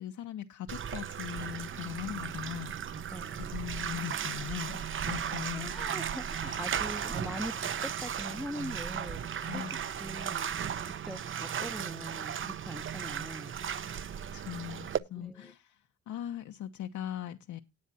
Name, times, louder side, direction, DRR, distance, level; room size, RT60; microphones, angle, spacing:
voice 1, 0.0-2.7 3.5-4.8 5.1-5.7 6.4-7.0 9.4-9.8 14.3-15.8 16.1-17.6, left 11 dB, 70° left, 1.0 m, -40 dB
Bathtub (filling or washing), 0.7-15.0, right 8 dB, 40° right, 0.8 m, -36 dB
voice 2, 2.9-3.6 4.7-4.9 5.5-10.5 10.9-13.5 15.2-15.5, equal, ahead, 0.7 m, -43 dB
18.5 x 7.3 x 2.7 m
cardioid pair, 90°, 30 cm